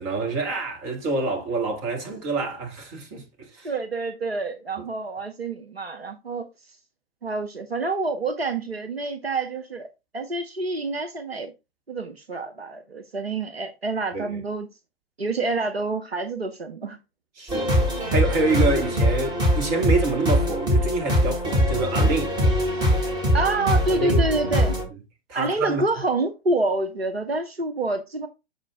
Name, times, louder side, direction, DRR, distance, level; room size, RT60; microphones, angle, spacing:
voice 1, 0.0-3.2 3.5-3.7 14.1-14.3 17.4-22.4 23.9-24.3 25.3-25.8, right 3 dB, 35° right, 2.2 m, -26 dB
voice 2, 3.6-6.5 7.2-11.5 11.9-14.7 15.2-17.0 23.3-24.8 25.3-28.3, right 3 dB, 85° right, 0.9 m, -27 dB
sound 1, 17.5-24.8, equal, 15° right, 2.1 m, -22 dB
6.6 x 5.0 x 3.6 m
figure-of-eight pair, 110°, 30 cm